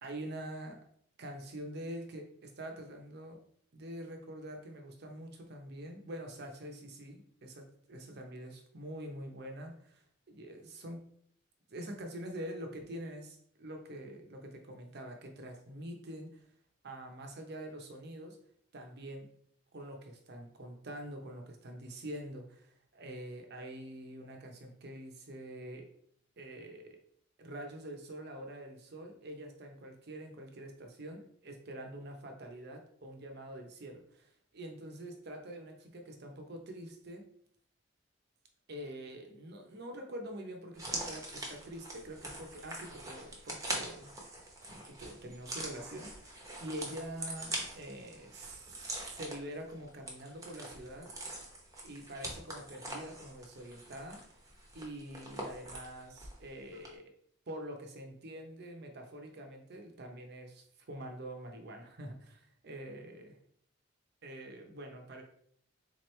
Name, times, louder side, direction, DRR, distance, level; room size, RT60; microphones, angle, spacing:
voice 1, 0.0-0.8 1.2-3.4 3.7-11.0 11.7-16.4 16.8-18.4 18.7-19.3 19.7-25.9 26.4-27.0 27.4-37.3 38.7-44.1 44.7-51.1 51.8-54.2 54.7-57.0 57.5-63.4 64.2-65.2, right 1 dB, 55° right, 3 dB, 0.7 m, -45 dB
sound 1, 40.7-56.4 56.7-56.9, right 1 dB, 15° right, 0.8 m, -43 dB
3.8 x 3.0 x 3.2 m, 0.65 s
head